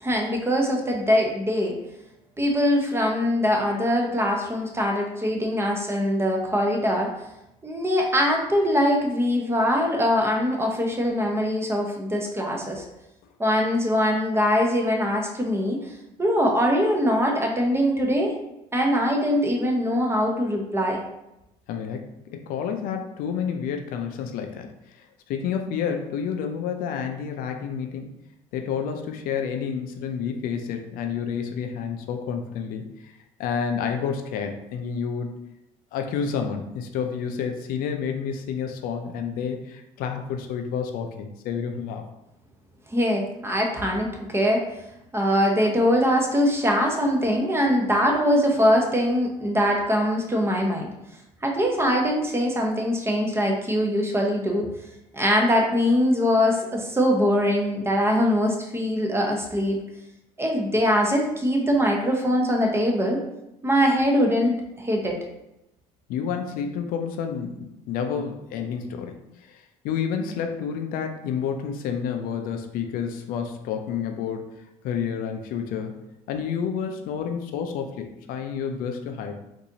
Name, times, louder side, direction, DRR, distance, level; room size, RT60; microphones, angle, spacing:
voice 1, 0.0-1.8 2.4-7.1 7.6-12.8 13.4-15.9 16.2-18.3 18.7-21.0 42.9-44.6 45.1-50.9 51.4-54.7 55.1-59.8 60.4-63.2 63.6-65.1, equal, 15° right, 1 dB, 0.8 m, -22 dB
voice 2, 21.7-28.1 28.5-35.4 35.9-42.1 66.1-74.4 74.8-76.0 76.3-79.4, left 7 dB, 65° left, 5 dB, 0.4 m, -30 dB
4.0 x 2.6 x 2.7 m, 0.87 s
supercardioid pair, 90°, 16 cm